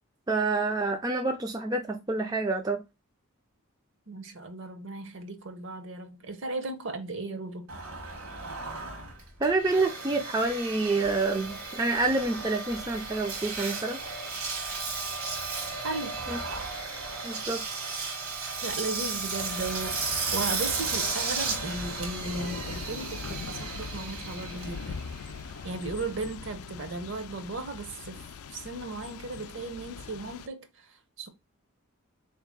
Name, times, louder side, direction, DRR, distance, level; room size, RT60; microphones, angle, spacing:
voice 1, 0.3-2.8 9.4-14.0 16.3-16.4 17.2-18.0, right 3 dB, 15° right, 0.3 m, -28 dB
voice 2, 4.1-7.7 15.8-16.2 18.6-25.0 25.6-28.2 28.5-31.3, right 3 dB, 55° right, 0.7 m, -36 dB
Engine, 7.7-26.1, right 4 dB, 75° right, 1.4 m, -35 dB
Thunder / Rain, 19.4-30.5, left 6 dB, 75° left, 0.4 m, -42 dB
3.9 x 2.8 x 3.6 m
head